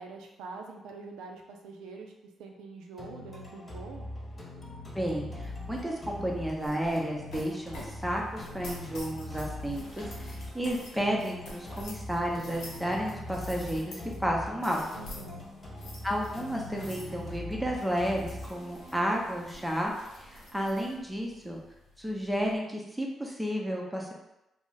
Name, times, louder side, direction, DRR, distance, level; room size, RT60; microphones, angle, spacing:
voice 1, 0.0-2.1 2.4-4.1 15.0-15.4, right 4 dB, 80° right, 2 dB, 0.4 m, -44 dB
sound 1, 3.0-21.0, left 1 dB, 35° left, 1.3 m, -43 dB
voice 2, 4.9-14.8 16.0-19.9 20.2-21.6 22.0-24.1, equal, 5° right, -1 dB, 0.7 m, -32 dB
sound 2, 5.4-22.6, left 1 dB, 75° left, 0.7 m, -49 dB
2.4 x 2.1 x 3.8 m, 0.92 s
hypercardioid pair, 45°, 0 cm